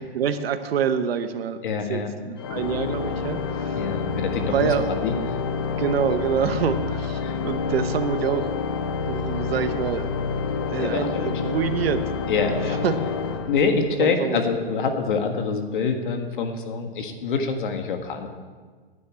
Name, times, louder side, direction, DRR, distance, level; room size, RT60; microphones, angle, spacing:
voice 1, 0.1-1.6 1.9-3.8 4.4-4.8 5.7-8.5 9.1-10.1 10.7-12.0 12.5-12.6 12.8-12.9 14.0-14.4, right 7 dB, 75° right, 9 dB, 1.1 m, -26 dB
voice 2, 1.6-2.1 3.7-5.4 7.2-7.4 10.5-11.3 12.3-12.8 13.5-18.4, left 5 dB, 55° left, 5 dB, 1.7 m, -26 dB
Organ, 2.4-14.2, left 5 dB, 25° left, 0.4 m, -28 dB
9.9 x 9.5 x 8.3 m, 1.5 s
hypercardioid pair, 165°, 30 cm